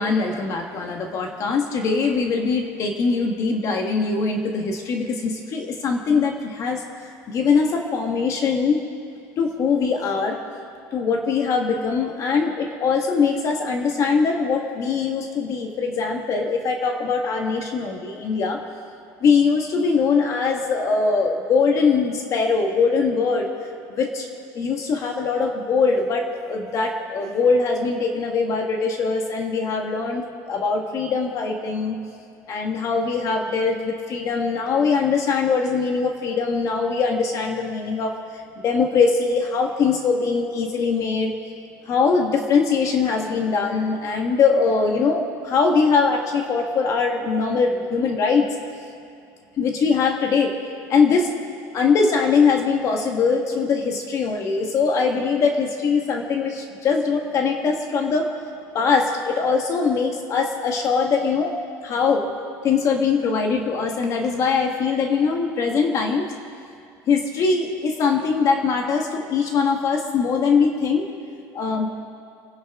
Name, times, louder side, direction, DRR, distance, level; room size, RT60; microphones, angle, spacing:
voice 1, 0.0-8.8 9.4-10.4 10.9-18.6 19.2-23.5 23.9-24.3 24.5-32.0 32.5-38.1 38.6-41.3 41.9-48.5 49.6-50.5 50.9-51.3 51.7-58.3 58.7-61.5 61.8-62.3 62.6-66.3 67.1-71.1 71.5-71.9, left 5 dB, 40° left, 3 dB, 1.5 m, -22 dB
28.5 x 10.5 x 3.7 m, 2.5 s
cardioid pair, 145°, 8 cm